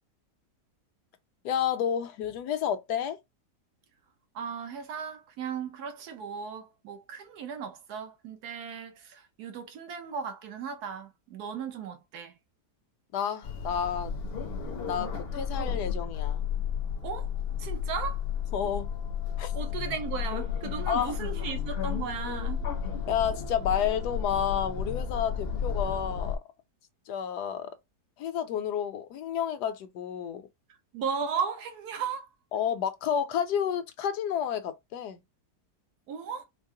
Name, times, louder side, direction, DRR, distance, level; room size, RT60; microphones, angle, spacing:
voice 1, 1.4-3.2 13.1-14.1 14.9-16.5 18.5-18.9 19.4-19.5 20.9-21.2 23.1-26.4 27.1-27.8 28.2-30.4 32.5-35.2, left 9 dB, 75° left, 1.2 m, -30 dB
voice 2, 4.3-12.3 17.0-17.3 17.6-18.2 19.5-22.7 30.9-32.3 36.1-36.4, right 6 dB, 70° right, 1.3 m, -36 dB
sound 1, 13.4-26.4, left 7 dB, 50° left, 0.7 m, -33 dB
4.5 x 2.0 x 3.7 m
omnidirectional pair, 1.8 m